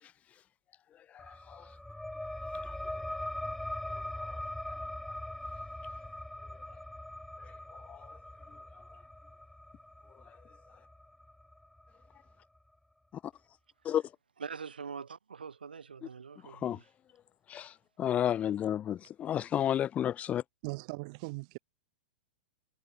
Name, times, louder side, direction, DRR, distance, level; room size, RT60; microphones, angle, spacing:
voice 1, 1.1-1.7 2.6-2.7 4.3-4.4 7.4-8.1 13.2-13.3 13.8-14.0 16.4-16.8 17.5-20.4, left 10 dB, 25° left, 1.4 m, -32 dB
sound 1, 1.2-12.3, left 1 dB, 5° left, 2.3 m, -41 dB
voice 2, 14.4-16.8, right 6 dB, 85° right, 6.8 m, -43 dB
voice 3, 20.6-21.6, right 28 dB, 50° right, 1.5 m, -39 dB
hypercardioid pair, 105°, 5 cm